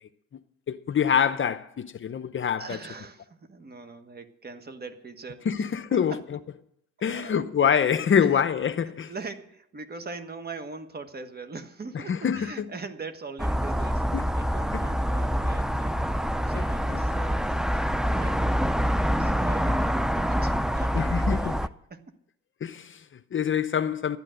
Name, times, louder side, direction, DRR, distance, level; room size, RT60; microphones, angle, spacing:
voice 1, 0.7-2.8 5.5-6.1 7.0-9.1 11.9-12.7 14.1-14.2 14.7-14.8 16.5-17.0 20.9-21.6 22.6-24.2, left 7 dB, 40° left, 0.7 m, -26 dB
voice 2, 2.6-5.5 5.9-6.2 7.0-7.5 8.2-8.3 8.8-16.0 16.3-18.8 19.2-22.1, right 3 dB, 30° right, 1.3 m, -41 dB
sound 1, 13.4-21.7, equal, ahead, 0.4 m, -26 dB
12.0 x 9.1 x 7.7 m
cardioid pair, 90°, 30 cm